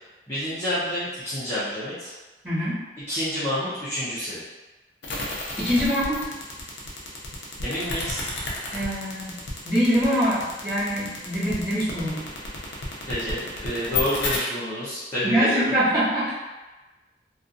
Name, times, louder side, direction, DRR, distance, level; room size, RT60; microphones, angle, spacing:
voice 1, 0.3-2.1 3.1-4.4 7.6-8.3 13.1-15.7, equal, 15° left, -15 dB, 0.6 m, -28 dB
voice 2, 2.4-2.8 5.6-6.2 8.7-9.4 9.6-12.2 15.2-16.3, equal, 20° right, -14 dB, 1.5 m, -24 dB
sound 1, 5.0-14.4, left 3 dB, 85° left, 0.6 m, -31 dB
2.6 x 2.4 x 2.4 m, 1.2 s
head